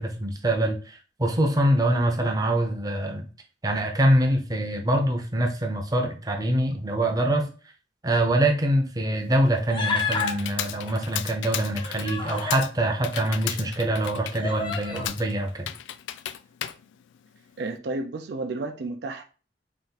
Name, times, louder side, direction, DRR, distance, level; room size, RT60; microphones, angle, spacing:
voice 1, 0.0-3.3 3.6-7.5 8.0-15.7, right 1 dB, 20° right, 2 dB, 0.6 m, -24 dB
Computer keyboard, 9.2-17.8, left 11 dB, 90° left, 0.3 m, -36 dB
Human voice, 9.7-10.4 11.5-12.6 13.4-13.5 14.4-15.1, left 4 dB, 25° left, 0.6 m, -30 dB
voice 2, 17.6-19.2, right 2 dB, 65° right, 6 dB, 0.4 m, -31 dB
3.5 x 2.4 x 4.0 m, 0.36 s
head